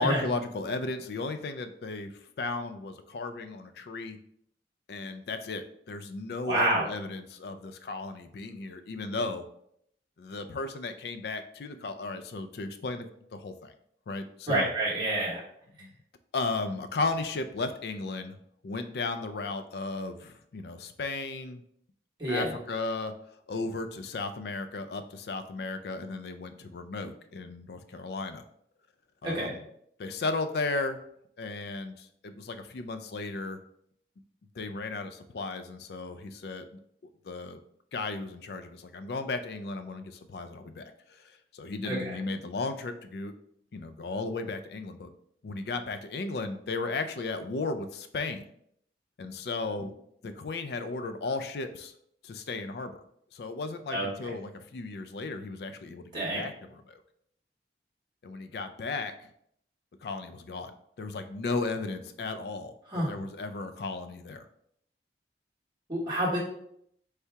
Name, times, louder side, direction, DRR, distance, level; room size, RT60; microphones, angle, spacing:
voice 1, 0.0-2.1 2.4-4.2 4.9-9.4 10.2-13.1 13.3-13.7 14.1-14.7 15.8-15.9 16.3-18.4 18.6-21.6 22.3-23.1 23.5-28.4 29.2-29.6 30.0-31.0 31.4-33.6 34.6-36.8 37.2-37.6 37.9-41.2 41.5-43.3 43.7-45.1 45.4-48.4 49.2-49.9 50.2-51.9 52.2-52.9 53.3-57.0 58.2-59.1 60.0-60.7 61.0-64.5, left 3 dB, 60° left, 9 dB, 0.4 m, -35 dB
voice 2, 6.4-6.9 14.5-15.4 22.2-22.5 29.2-29.5 41.8-42.2 53.9-54.3 56.1-56.4 62.9-63.1 65.9-66.4, right 1 dB, 25° right, -6 dB, 1.3 m, -28 dB
3.4 x 2.8 x 4.5 m, 0.70 s
head